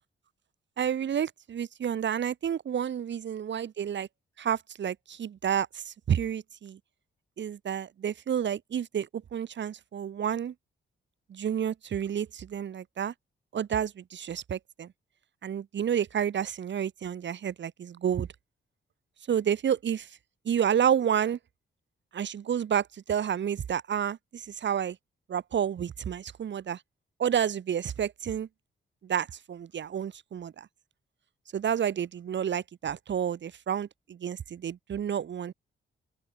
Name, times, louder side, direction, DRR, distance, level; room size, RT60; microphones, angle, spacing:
voice 1, 0.8-4.1 4.4-6.8 7.4-10.5 11.3-13.1 13.5-14.9 15.4-18.3 19.3-20.2 20.5-21.4 22.1-25.0 25.3-26.8 27.2-28.5 29.0-30.7 31.5-35.5, right 8 dB, 60° right, 1.8 m, -30 dB
open air
cardioid pair, 100°, 21 cm